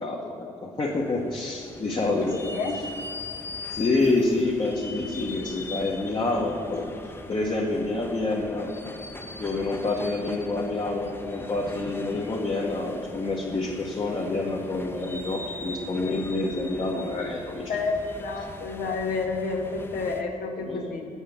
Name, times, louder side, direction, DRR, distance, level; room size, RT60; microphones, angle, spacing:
voice 1, 0.0-2.5 3.7-6.9 7.3-8.7 9.4-17.6 20.6-20.9, left 2 dB, 35° left, -3 dB, 1.0 m, -27 dB
sound 1, 0.8-20.2, left 2 dB, 15° left, 0.6 m, -41 dB
voice 2, 2.1-2.8 17.7-21.1, left 4 dB, 85° left, 2 dB, 0.9 m, -30 dB
7.3 x 4.7 x 7.0 m, 2.6 s
cardioid pair, 80°, 14 cm